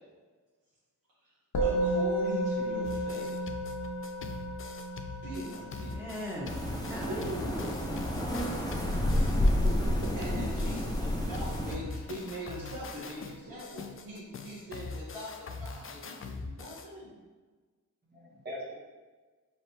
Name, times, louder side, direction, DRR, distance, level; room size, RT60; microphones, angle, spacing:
Musical instrument, 1.5-11.1, right 1 dB, 60° left, 0.8 m, -34 dB
voice 1, 1.6-3.4 5.2-6.0 7.1-7.6 10.1-17.2, right 1 dB, 80° right, -9 dB, 1.1 m, -41 dB
sound 1, 2.8-11.0 11.3-16.9, left 4 dB, 40° left, 0.4 m, -43 dB
voice 2, 5.9-6.5 6.8-9.0, equal, 5° right, -6 dB, 1.3 m, -41 dB
sound 2, 6.4-11.8, left 1 dB, 10° left, 0.7 m, -30 dB
voice 3, 9.6-10.5 18.1-18.7, left 1 dB, 30° right, -4 dB, 1.2 m, -40 dB
4.5 x 3.2 x 2.9 m, 1.3 s
wide cardioid pair, 85°, 34 cm